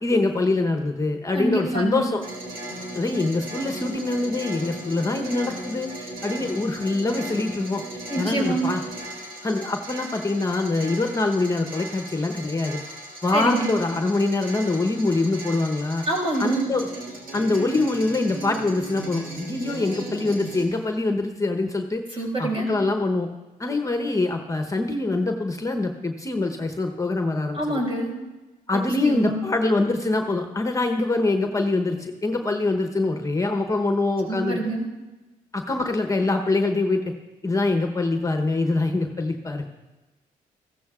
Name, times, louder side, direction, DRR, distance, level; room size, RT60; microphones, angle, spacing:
voice 1, 0.0-2.2 2.9-7.8 8.2-8.8 9.4-12.8 13.2-16.0 16.4-16.9 17.3-23.3 23.6-27.8 28.7-34.6 35.5-37.0 37.4-39.7, left 2 dB, 20° left, 5 dB, 0.9 m, -24 dB
voice 2, 1.3-2.1 8.1-8.6 13.3-13.7 16.1-16.6 22.2-22.7 27.5-28.1 28.7-29.4 34.3-34.9, right 1 dB, 40° right, -1 dB, 4.7 m, -26 dB
sound 1, 2.2-20.6, right 1 dB, 80° right, 2.6 m, -37 dB
15.0 x 13.0 x 2.4 m, 1.1 s
cardioid pair, 70°, 15 cm